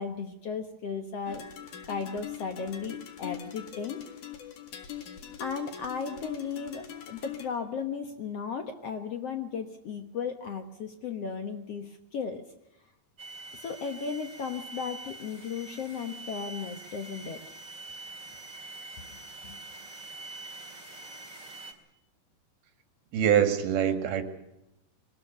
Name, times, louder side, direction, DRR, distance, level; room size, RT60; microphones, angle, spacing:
voice 1, 0.0-1.4 1.9-4.0 5.4-12.5 13.5-17.4 19.4-19.6, left 6 dB, 75° left, 6 dB, 1.4 m, -35 dB
sound 1, 1.3-7.5, left 9 dB, 55° left, 3.0 m, -42 dB
sound 2, 13.2-21.7, right 2 dB, 25° right, 1.9 m, -45 dB
voice 2, 23.1-24.2, right 9 dB, 65° right, 7 dB, 3.8 m, -24 dB
22.5 x 19.0 x 6.9 m, 0.86 s
omnidirectional pair, 4.8 m